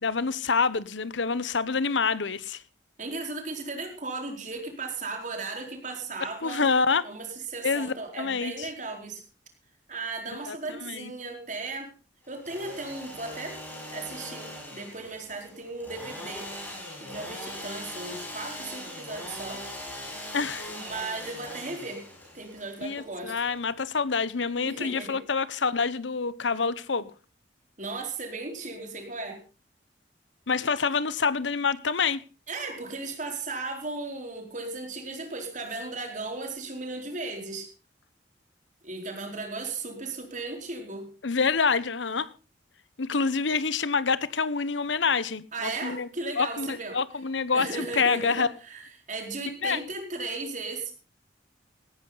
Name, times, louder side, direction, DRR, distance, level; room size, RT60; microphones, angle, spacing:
voice 1, 0.0-2.6 6.4-7.0 7.6-8.7 10.5-10.6 10.8-11.1 20.3-20.7 22.8-27.1 30.5-32.2 41.2-42.3 43.0-46.1 46.4-46.7 46.9-48.5 49.6-49.8, left 5 dB, 85° left, 0.9 m, -27 dB
voice 2, 3.0-6.7 7.0-9.2 9.9-11.9 12.3-13.6 13.9-16.5 17.0-19.6 20.7-22.0 22.3-23.4 24.6-25.2 27.8-29.4 32.5-37.7 38.8-41.1 45.5-47.0 47.5-50.9, right 3 dB, 45° right, 4.4 m, -36 dB
Engine / Sawing, 12.2-23.9, left 1 dB, 10° left, 6.2 m, -41 dB
17.5 x 14.0 x 4.0 m
head